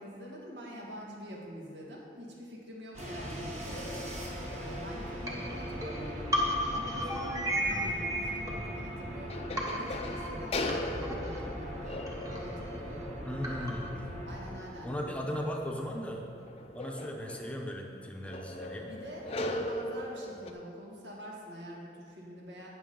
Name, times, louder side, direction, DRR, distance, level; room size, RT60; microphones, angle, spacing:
voice 1, 0.0-4.0 4.5-13.1 14.2-14.9 18.8-22.7, equal, 85° right, -3 dB, 2.1 m, -46 dB
sound 1, 2.9-16.9, equal, 40° right, 1.8 m, -41 dB
sound 2, 3.7-6.9 7.4-7.5 8.8-8.9 9.3-20.5, left 1 dB, 35° left, 0.5 m, -40 dB
sound 3, 5.2-9.2 9.6-14.0, equal, 20° right, 1.2 m, -35 dB
voice 2, 13.2-13.9 14.8-16.2 16.7-18.9, equal, 5° left, 0 dB, 0.8 m, -37 dB
17.5 x 6.2 x 3.8 m, 2.4 s
head